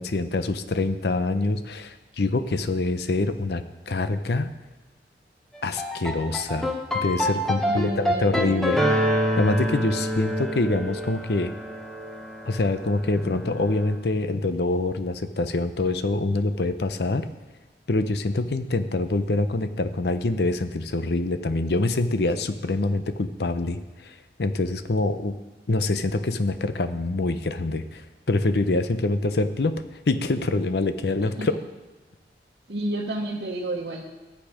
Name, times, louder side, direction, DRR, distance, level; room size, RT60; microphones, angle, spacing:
voice 1, 0.0-4.5 5.6-6.7 7.0-8.8 9.4-11.5 12.5-17.3 17.9-25.3 25.7-28.0 28.3-31.5, left 2 dB, 65° left, 10 dB, 0.7 m, -25 dB
sound 1, 5.5-13.8, equal, ahead, 1.0 m, -27 dB
voice 2, 7.6-8.6 31.2-31.6 32.7-34.0, right 1 dB, 65° right, -4 dB, 1.1 m, -31 dB
11.5 x 8.4 x 5.0 m, 1.2 s
head